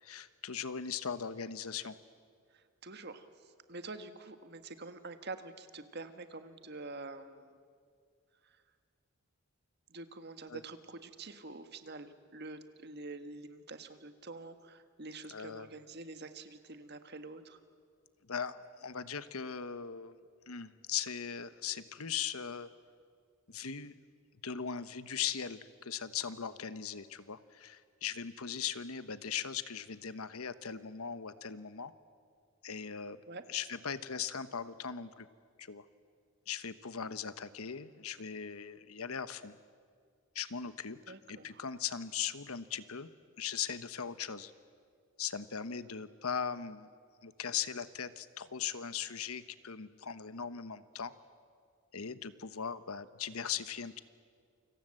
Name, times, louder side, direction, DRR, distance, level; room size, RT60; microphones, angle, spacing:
voice 1, 0.0-2.0 10.5-10.6 15.3-15.7 18.2-20.1 20.5-22.7 23.5-23.9 24.4-31.9 32.6-33.2 33.5-35.3 35.6-35.8 36.5-39.6 40.3-43.1 43.4-44.5 45.2-46.9 47.2-51.1 51.9-54.0, left 7 dB, 85° left, 13 dB, 1.1 m, -39 dB
voice 2, 2.8-3.3 3.7-7.6 9.9-17.6 33.3-33.4 41.1-41.7, right 3 dB, 50° right, 9 dB, 1.6 m, -46 dB
29.0 x 25.5 x 7.8 m, 2.1 s
head